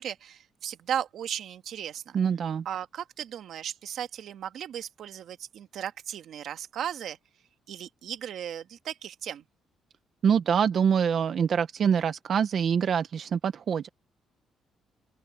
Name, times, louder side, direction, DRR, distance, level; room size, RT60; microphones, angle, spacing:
voice 1, 0.0-2.2 2.6-7.2 7.7-9.4, right 9 dB, 60° right, 1.5 m, -36 dB
voice 2, 2.1-2.6 10.2-13.9, right 7 dB, 45° right, 0.7 m, -25 dB
open air
cardioid pair, 155°, 0 cm